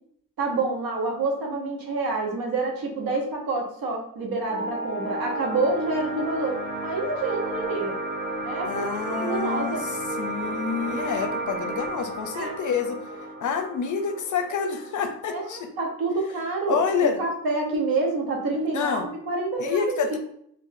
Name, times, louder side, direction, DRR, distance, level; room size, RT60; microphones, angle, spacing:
voice 1, 0.4-7.9 8.4-9.8 12.3-12.6 15.3-20.2, right 3 dB, 80° right, 1 dB, 0.9 m, -28 dB
sound 1, 4.5-15.5, right 2 dB, 30° right, 1.1 m, -33 dB
voice 2, 8.6-13.0 13.4-15.7 16.7-17.2 18.7-19.1 19.6-20.2, left 6 dB, 55° left, 6 dB, 0.6 m, -28 dB
3.9 x 2.6 x 2.6 m, 0.69 s
cardioid pair, 80°, 36 cm